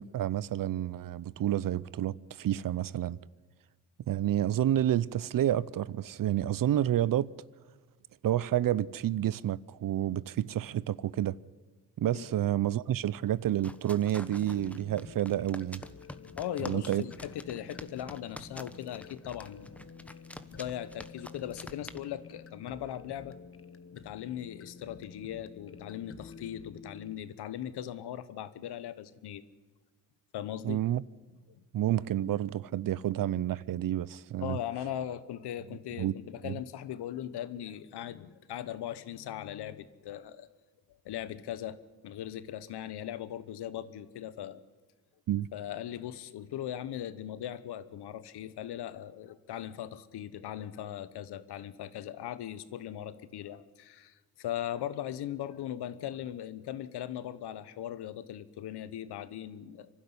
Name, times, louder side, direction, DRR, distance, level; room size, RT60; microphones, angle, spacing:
voice 1, 0.0-3.2 4.1-7.3 8.2-11.4 12.0-15.8 16.6-17.0 30.6-31.0 31.7-34.6 36.0-36.1 36.4-36.6 45.3-45.5, right 12 dB, 60° right, 0.6 m, -29 dB
sound 1, 13.2-22.0, left 1 dB, 5° left, 1.1 m, -47 dB
sound 2, 14.2-27.2, left 5 dB, 35° left, 1.2 m, -50 dB
voice 2, 16.4-19.7 20.5-23.3 23.9-29.4 30.3-30.8 34.4-40.5 41.0-44.6 45.5-59.9, left 11 dB, 80° left, 1.1 m, -39 dB
25.5 x 12.0 x 9.7 m
cardioid pair, 70°, 39 cm